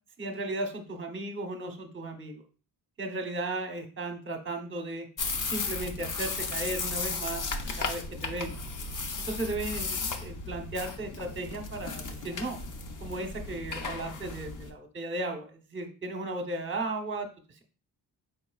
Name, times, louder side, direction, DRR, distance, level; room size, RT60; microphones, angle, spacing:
voice 1, 0.2-2.4 3.0-5.1 5.5-7.4 7.8-8.5 9.2-12.6 13.0-17.3, right 2 dB, 30° right, 5 dB, 0.8 m, -35 dB
sound 1, 5.2-14.7, left 4 dB, 50° left, 0.6 m, -35 dB
4.7 x 4.2 x 2.3 m, 0.35 s
wide cardioid pair, 120°, 41 cm